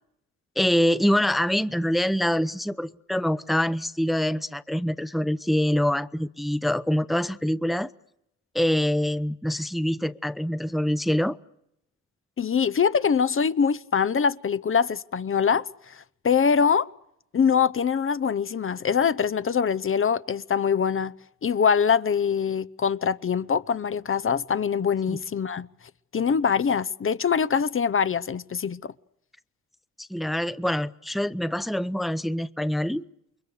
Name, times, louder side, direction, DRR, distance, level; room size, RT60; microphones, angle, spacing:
voice 1, 0.6-7.9 8.5-11.4 25.1-25.2 30.0-33.0, equal, ahead, 0.9 m, -25 dB
voice 2, 12.4-16.9 17.3-21.1 21.4-25.7 26.1-28.9, left 6 dB, 40° left, 0.9 m, -23 dB
29.0 x 23.0 x 6.7 m
cardioid pair, 80°, 31 cm